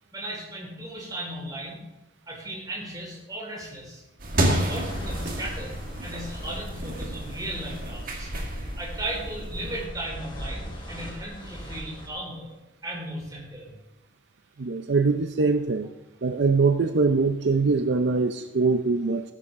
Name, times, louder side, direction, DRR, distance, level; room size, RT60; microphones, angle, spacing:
voice 1, 0.1-1.8 2.3-4.0 4.5-12.5 12.8-13.8, right 1 dB, 20° right, -4 dB, 4.5 m, -36 dB
sound 1, 4.2-9.9, right 1 dB, 45° right, 1.9 m, -31 dB
sound 2, 4.7-12.1, equal, 25° left, 2.4 m, -38 dB
voice 2, 14.6-15.9 16.2-19.2, right 4 dB, 65° right, 7 dB, 0.6 m, -23 dB
17.0 x 9.9 x 3.7 m, 1.0 s
head